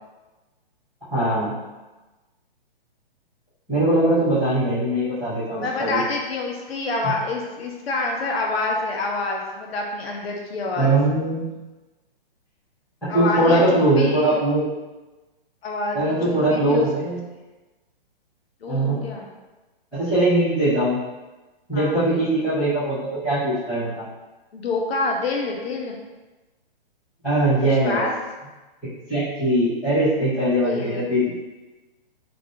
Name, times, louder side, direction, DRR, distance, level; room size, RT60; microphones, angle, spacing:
voice 1, 1.1-1.6 3.7-6.0 7.0-7.1 10.7-11.5 13.0-14.6 15.9-17.2 18.7-19.0 19.9-21.0 21.7-24.0 27.2-28.0 28.8-31.3, right 1 dB, 5° left, -20 dB, 0.5 m, -21 dB
voice 2, 5.6-10.9 13.1-13.6 14.0-14.4 15.6-16.9 18.6-19.3 21.7-22.2 24.5-26.0 27.6-28.1 30.6-31.0, left 3 dB, 85° left, 0 dB, 0.6 m, -27 dB
2.5 x 2.3 x 3.6 m, 1.2 s
hypercardioid pair, 175°, 30 cm